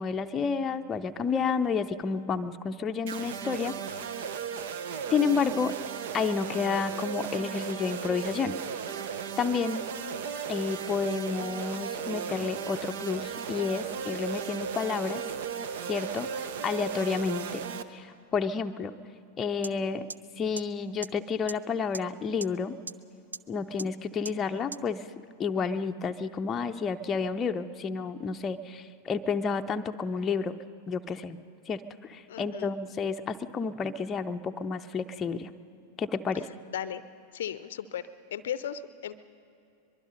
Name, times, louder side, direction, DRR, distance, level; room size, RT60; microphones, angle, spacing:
voice 1, 0.0-3.8 5.1-5.7 6.1-8.6 9.4-9.9 10.5-15.2 15.9-17.6 17.9-19.0 19.4-20.1 20.4-22.8 23.5-25.1 25.4-30.6 30.9-31.4 31.7-35.5 36.0-36.5, left 5 dB, 20° left, 6 dB, 0.7 m, -30 dB
sound 1, 3.1-17.8, right 7 dB, 55° right, 0.9 m, -36 dB
sound 2, 19.6-19.7 20.1-20.2 20.6-20.7 21.0-21.1 21.5-21.6 21.9-22.0 22.4-22.5 22.9-23.0 23.3-23.4 23.8-23.9 24.2-24.3 24.7-24.8, right 3 dB, 75° right, 0.4 m, -36 dB
voice 2, 32.3-32.7 36.7-37.0 37.3-39.2, left 9 dB, 60° left, 15 dB, 0.6 m, -36 dB
23.5 x 22.5 x 5.3 m, 2.7 s
figure-of-eight pair, 90°, 0 cm